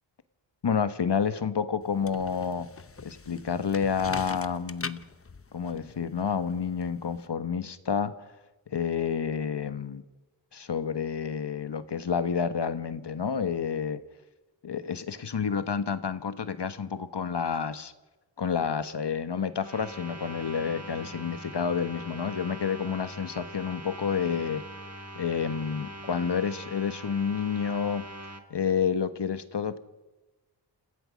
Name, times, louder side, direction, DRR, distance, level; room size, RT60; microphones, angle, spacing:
voice 1, 0.6-2.7 3.0-5.0 5.5-8.3 8.7-10.0 10.5-14.0 14.6-17.9 18.4-24.6 25.2-28.0 28.5-29.8, left 6 dB, 65° left, 12 dB, 1.3 m, -29 dB
sound 1, 1.8-7.3, left 4 dB, 30° left, 0.8 m, -43 dB
sound 2, 19.6-28.4, right 1 dB, 35° right, 2.4 m, -42 dB
29.0 x 16.0 x 6.4 m, 1.1 s
wide cardioid pair, 90°, 45 cm